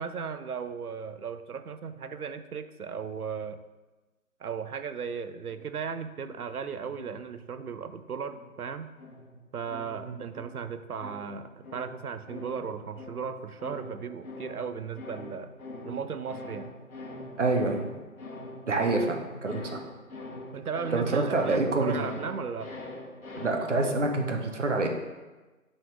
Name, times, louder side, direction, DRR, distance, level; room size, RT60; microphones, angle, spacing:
voice 1, 0.0-3.6 4.4-8.9 9.5-15.5 15.8-16.7 20.5-22.7, right 6 dB, 80° right, 11 dB, 0.7 m, -36 dB
sound 1, 5.5-7.9 8.3-23.5, left 2 dB, 65° left, 1.5 m, -44 dB
voice 2, 17.4-17.8 18.7-19.2 19.4-19.8 20.9-22.1 23.4-24.9, right 3 dB, 55° right, 2 dB, 1.2 m, -26 dB
7.9 x 4.2 x 5.2 m, 1.2 s
figure-of-eight pair, 170°, 44 cm